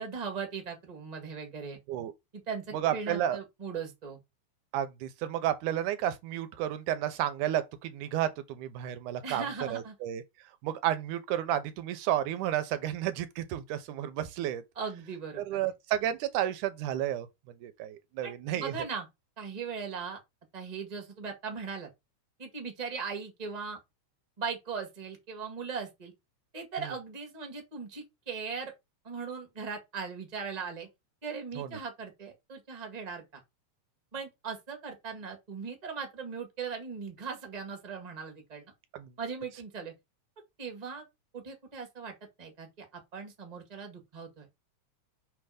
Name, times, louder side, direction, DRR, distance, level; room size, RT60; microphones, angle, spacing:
voice 1, 0.0-1.8 2.3-4.2 9.2-9.9 14.7-15.4 18.2-19.1 19.4-20.2 20.5-21.9 22.4-23.8 24.4-26.1 26.5-28.7 29.0-30.9 31.2-33.4 34.1-38.6 39.2-39.9 40.6-41.0 41.3-44.5, right 5 dB, 20° right, 1.3 m, -39 dB
voice 2, 2.7-3.4 4.7-9.4 9.7-10.2 10.6-14.6 15.4-18.9 26.8-26.9 31.6-31.8 38.9-39.1, right 11 dB, 90° right, 2.3 m, -32 dB
6.0 x 3.4 x 5.0 m
omnidirectional pair, 3.5 m